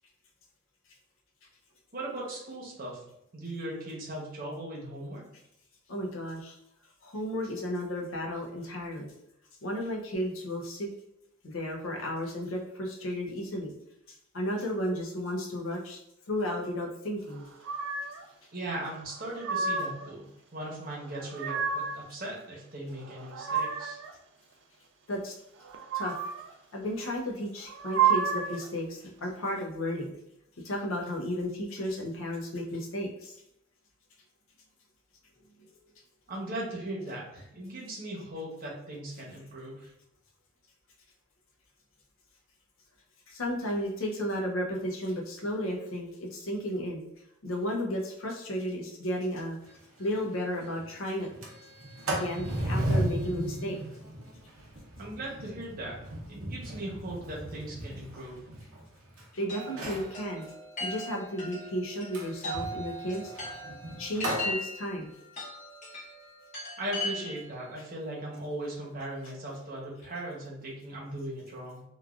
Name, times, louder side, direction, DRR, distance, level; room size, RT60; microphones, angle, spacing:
voice 1, 1.9-3.0 3.3-5.2 18.5-20.2 20.5-24.0 36.3-39.9 55.0-58.4 66.8-71.8, right 1 dB, 40° right, -4 dB, 0.8 m, -38 dB
voice 2, 5.9-6.6 7.0-9.1 9.6-10.9 11.4-13.7 14.1-16.0 16.3-17.5 25.1-25.4 25.9-26.2 26.7-30.1 30.6-33.4 43.3-47.1 47.4-49.6 50.0-51.3 52.1-53.8 59.3-60.5 60.8-63.3 64.0-65.1, equal, 70° left, 0 dB, 0.6 m, -33 dB
sound 1, 17.6-18.2 19.1-20.1 21.0-22.0 23.0-24.1 25.6-26.5 27.6-28.7, right 6 dB, 60° right, 0.3 m, -30 dB
Sliding door, 49.7-49.8 50.1-50.2 50.5-50.8 51.2-59.2 59.6-60.1 62.1-64.5, right 1 dB, 85° right, 0.7 m, -35 dB
Chime, 59.5-67.6, left 1 dB, 35° left, 1.0 m, -39 dB
3.1 x 2.3 x 2.4 m, 0.79 s
head